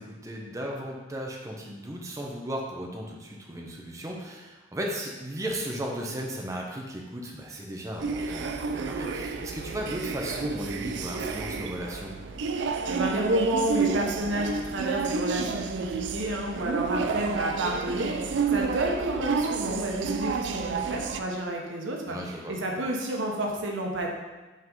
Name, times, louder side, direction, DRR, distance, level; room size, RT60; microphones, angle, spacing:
voice 1, 0.0-12.1 22.0-22.5, equal, 15° right, -1 dB, 0.7 m, -36 dB
sound 1, 8.0-21.2, right 5 dB, 65° right, 0.4 m, -30 dB
voice 2, 12.7-24.1, right 1 dB, 90° right, 0 dB, 1.1 m, -30 dB
5.4 x 3.9 x 5.4 m, 1.2 s
head